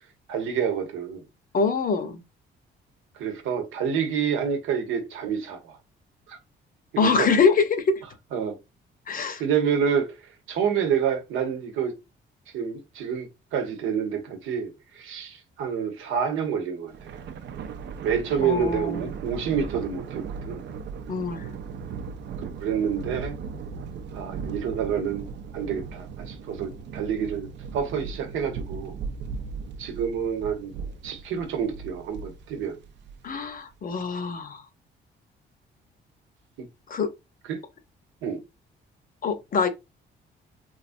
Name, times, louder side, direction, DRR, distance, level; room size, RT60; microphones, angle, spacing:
voice 1, 0.3-1.2 3.1-5.8 6.3-6.4 6.9-7.3 8.3-8.6 9.4-10.2 10.5-12.0 12.5-17.2 18.0-20.6 22.6-23.4 24.1-25.3 25.5-29.0 29.8-30.7 31.0-32.8 36.6-36.7 37.5-37.6 38.2-38.4, right 7 dB, 90° right, 0.8 m, -28 dB
voice 2, 1.5-2.2 7.0-8.0 9.1-9.4 18.4-19.1 21.1-21.5 33.2-34.6 36.9-37.1 39.2-39.7, left 5 dB, 45° left, 0.7 m, -24 dB
Thunder, 16.9-33.5, right 5 dB, 65° right, 0.4 m, -37 dB
3.1 x 2.5 x 2.5 m
cardioid pair, 90°, 20 cm